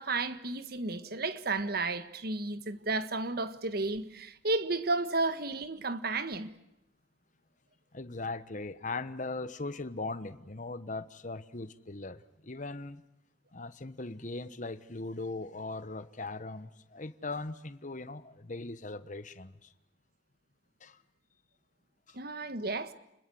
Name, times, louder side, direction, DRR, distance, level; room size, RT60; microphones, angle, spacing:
voice 1, 0.0-6.5 22.1-22.9, right 3 dB, 55° right, 1.6 m, -32 dB
voice 2, 7.9-13.0 13.5-19.7 20.8-21.0 22.1-22.2, left 3 dB, 45° left, 1.2 m, -39 dB
30.0 x 21.0 x 7.8 m
head